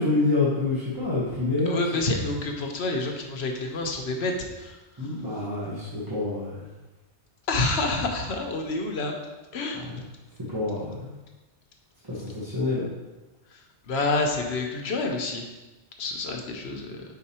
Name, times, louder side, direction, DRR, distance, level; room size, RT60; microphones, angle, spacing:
voice 1, 0.0-2.0 5.0-6.7 9.7-10.0 10.5-11.1 12.0-12.9, left 2 dB, 20° right, -9 dB, 1.2 m, -27 dB
voice 2, 1.7-5.1 7.5-9.1 9.5-10.0 13.5-15.4 16.0-17.0, left 3 dB, 65° left, 2 dB, 1.0 m, -28 dB
5.7 x 4.2 x 4.2 m, 1.1 s
omnidirectional pair, 1.2 m